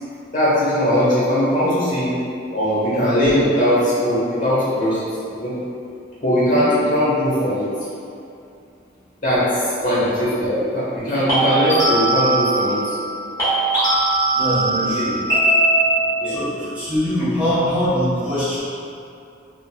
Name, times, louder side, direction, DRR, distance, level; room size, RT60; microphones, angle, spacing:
voice 1, 0.3-2.1 2.5-5.1 5.3-5.6 6.2-7.7 9.2-13.0 14.9-15.1 16.2-16.3, equal, 40° left, -11 dB, 1.0 m, -19 dB
sound 1, 6.3-6.6 11.3-13.1 13.4-16.3, right 2 dB, 15° left, 1.2 m, -20 dB
voice 2, 14.3-15.2 16.2-18.6, equal, 5° right, -13 dB, 0.8 m, -22 dB
3.0 x 2.3 x 2.2 m, 2.6 s
head